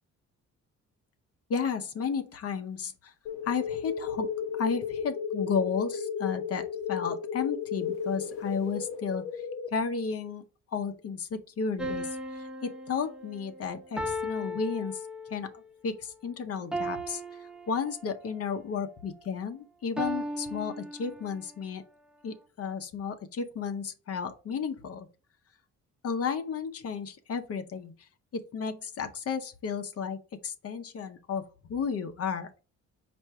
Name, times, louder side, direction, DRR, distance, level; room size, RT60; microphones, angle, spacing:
voice 1, 1.5-3.1 3.4-4.3 4.6-9.4 9.7-10.4 10.7-15.0 15.3-21.8 22.2-25.1 26.0-27.9 28.3-30.2 30.4-32.6, left 6 dB, 50° left, 7 dB, 0.7 m, -33 dB
sound 1, 3.3-9.7, left 7 dB, 90° left, 0.6 m, -34 dB
sound 2, 11.8-15.5 16.7-18.3 20.0-21.5, equal, 5° right, 0.8 m, -37 dB
4.4 x 2.5 x 4.5 m, 0.34 s
cardioid pair, 90°, 30 cm